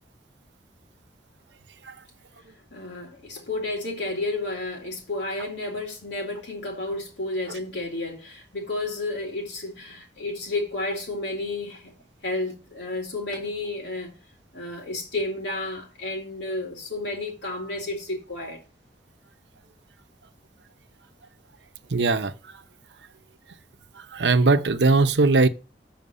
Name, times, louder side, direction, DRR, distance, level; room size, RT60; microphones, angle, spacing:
voice 1, 2.7-11.9 12.2-14.2 14.5-18.6, left 2 dB, 85° left, 4.2 m, -31 dB
voice 2, 21.9-22.3 24.1-25.5, right 3 dB, 75° right, 0.8 m, -19 dB
7.0 x 5.8 x 6.5 m
head